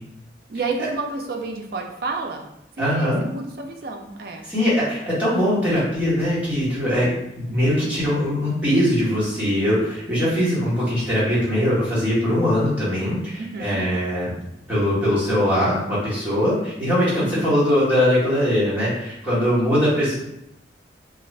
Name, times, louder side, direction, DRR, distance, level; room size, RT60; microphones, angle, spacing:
voice 1, 0.5-2.5 2.8-4.5 7.5-7.9 13.5-13.8 17.2-17.3, right 3 dB, 55° right, 3 dB, 0.4 m, -30 dB
voice 2, 2.8-3.2 4.4-14.3 14.7-20.2, equal, 10° right, -10 dB, 1.2 m, -21 dB
2.4 x 2.4 x 3.2 m, 0.82 s
head